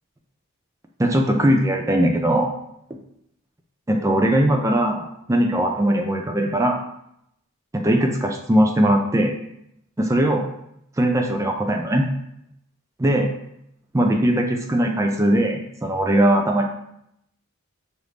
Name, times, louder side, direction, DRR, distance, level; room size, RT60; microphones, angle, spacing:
voice 1, 1.0-2.5 2.9-3.0 3.9-6.8 7.7-9.3 10.0-10.5 11.0-12.1 13.0-13.3 13.9-16.7, right 1 dB, 15° right, 3 dB, 0.4 m, -20 dB
4.9 x 2.6 x 3.2 m, 0.76 s
head